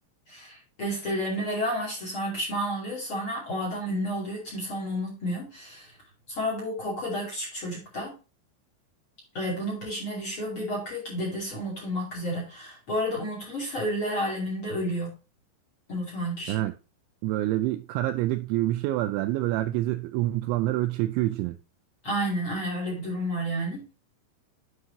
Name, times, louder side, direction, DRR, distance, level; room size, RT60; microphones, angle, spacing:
voice 1, 0.3-5.9 6.3-8.1 9.3-15.1 15.9-16.5 22.0-23.8, equal, 35° left, 2.6 m, -31 dB
voice 2, 17.2-21.6, right 15 dB, 85° right, 2.7 m, -27 dB
9.6 x 5.4 x 2.7 m
omnidirectional pair, 5.6 m